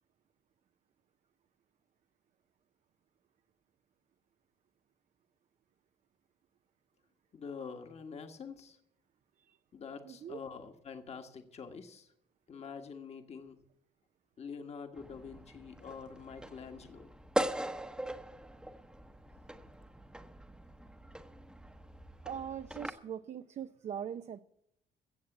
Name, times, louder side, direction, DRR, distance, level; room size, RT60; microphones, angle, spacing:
voice 1, 7.3-8.8 9.7-12.1 12.5-13.6 14.4-17.1, left 5 dB, 40° left, 5 dB, 1.5 m, -46 dB
voice 2, 10.0-10.4 22.2-24.4, right 8 dB, 45° right, 9 dB, 0.5 m, -41 dB
sound 1, 15.0-22.9, right 1 dB, 5° right, 0.9 m, -41 dB
16.0 x 7.3 x 7.2 m, 0.76 s
cardioid pair, 110°, 17 cm